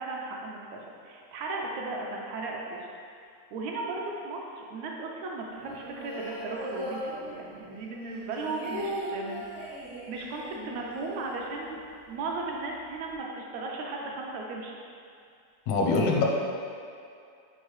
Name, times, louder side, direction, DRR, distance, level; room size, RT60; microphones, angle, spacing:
voice 1, 0.0-2.8 3.5-11.8 12.1-14.8, right 3 dB, 80° right, -1 dB, 1.9 m, -36 dB
sound 1, 5.6-7.7 8.0-12.0 12.3-12.4 12.6-13.1, equal, 65° left, 0.8 m, -39 dB
voice 2, 15.7-16.2, left 3 dB, 80° left, -1 dB, 2.0 m, -23 dB
6.3 x 4.8 x 3.1 m, 2.4 s
omnidirectional pair, 3.4 m